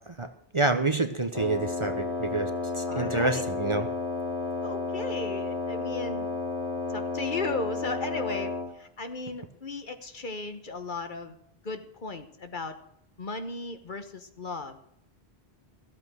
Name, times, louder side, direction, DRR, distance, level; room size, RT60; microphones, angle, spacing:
voice 1, 0.5-3.9, right 2 dB, 30° right, 8 dB, 0.9 m, -28 dB
Wind instrument woodwind instrument, 1.3-8.8, left 3 dB, 25° left, 2.8 m, -32 dB
voice 2, 2.9-3.4 4.6-6.3 6.9-11.4 11.6-12.8 13.2-14.8, left 3 dB, 50° left, 8 dB, 1.3 m, -36 dB
14.5 x 8.3 x 6.3 m, 0.75 s
omnidirectional pair, 1.1 m